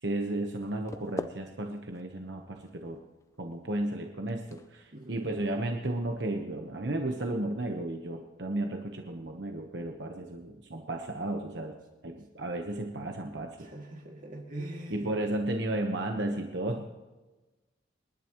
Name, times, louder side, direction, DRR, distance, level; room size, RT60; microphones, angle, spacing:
voice 1, 0.0-3.0 3.4-11.8 12.0-13.7 14.9-16.9, right 1 dB, 60° right, 3 dB, 1.1 m, -33 dB
sound 1, 0.6-6.5, left 1 dB, 15° left, 0.4 m, -46 dB
voice 2, 4.9-5.3 13.6-15.1, right 1 dB, 45° right, 0 dB, 2.4 m, -42 dB
28.5 x 11.0 x 3.1 m, 1.2 s
head